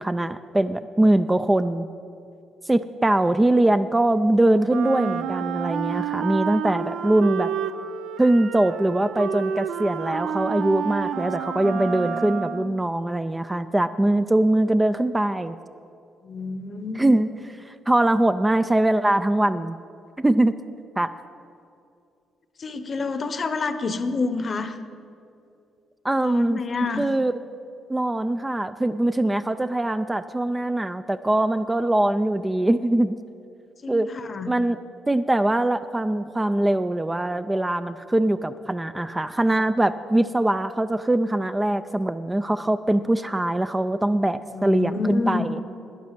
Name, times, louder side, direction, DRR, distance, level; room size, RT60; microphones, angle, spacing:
voice 1, 0.0-1.9 2.7-7.5 8.2-15.6 16.9-17.3 17.7-19.8 20.2-20.6 21.0-21.1 26.0-26.6 27.0-27.3 27.9-33.2 33.9-34.1 34.5-34.8 35.1-45.6, right 1 dB, 15° right, 10 dB, 0.4 m, -22 dB
Wind instrument woodwind instrument, 4.7-12.8, right 8 dB, 75° right, 0.6 m, -29 dB
voice 2, 16.2-17.2 22.6-24.8 26.2-27.1 33.8-34.5 44.5-45.5, left 4 dB, 40° left, 11 dB, 0.9 m, -28 dB
11.5 x 9.4 x 7.5 m, 2.5 s
cardioid pair, 90°, 0 cm